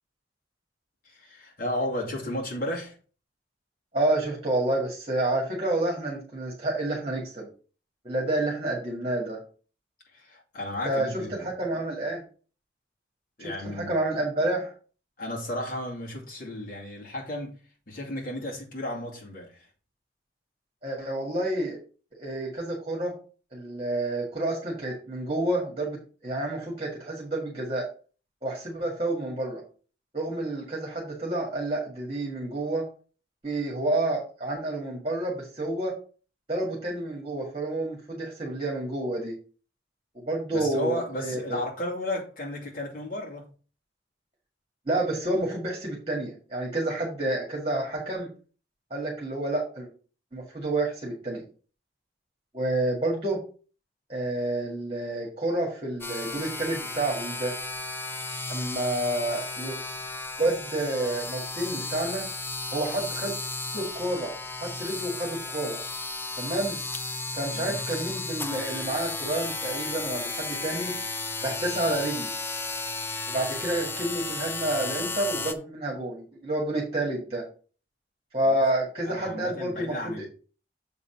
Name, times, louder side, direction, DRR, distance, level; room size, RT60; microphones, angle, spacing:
voice 1, 1.0-3.0 10.1-11.5 13.4-14.0 15.2-17.6 17.9-19.7 40.5-43.5 67.5-67.8 78.5-78.6 79.1-80.3, left 1 dB, 50° left, 2.5 m, -34 dB
voice 2, 3.9-7.5 8.0-9.4 10.8-12.2 13.4-14.7 20.8-21.8 22.1-23.2 23.5-27.9 28.4-29.6 30.1-32.9 33.4-35.9 36.5-39.4 40.1-41.4 44.9-48.3 48.9-49.9 50.3-51.4 52.5-53.4 54.1-57.5 58.5-59.8 60.4-62.3 62.7-63.3 63.7-64.3 64.6-65.8 66.4-66.8 67.3-70.9 71.4-72.3 73.3-77.4 78.3-80.2, right 2 dB, 30° right, 1.9 m, -29 dB
sound 1, 56.0-75.5, left 3 dB, 10° left, 0.4 m, -34 dB
7.2 x 4.1 x 5.7 m
head